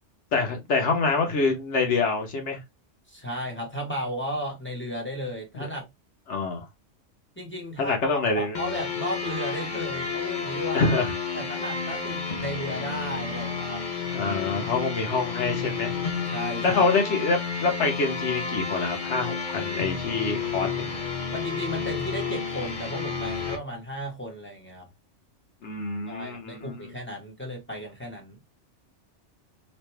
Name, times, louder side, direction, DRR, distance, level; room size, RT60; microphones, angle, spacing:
voice 1, 0.3-2.6 5.5-5.7 6.3-6.7 7.8-8.6 10.7-11.1 14.1-15.9 16.6-21.0 25.6-26.9, left 4 dB, 70° left, 1.2 m, -26 dB
voice 2, 3.1-5.8 7.4-10.9 11.3-13.8 16.3-16.9 21.3-24.9 26.1-28.4, equal, 10° left, 1.1 m, -34 dB
sound 1, 8.5-23.6, left 5 dB, 45° left, 0.9 m, -31 dB
3.2 x 2.6 x 3.2 m
omnidirectional pair, 1.2 m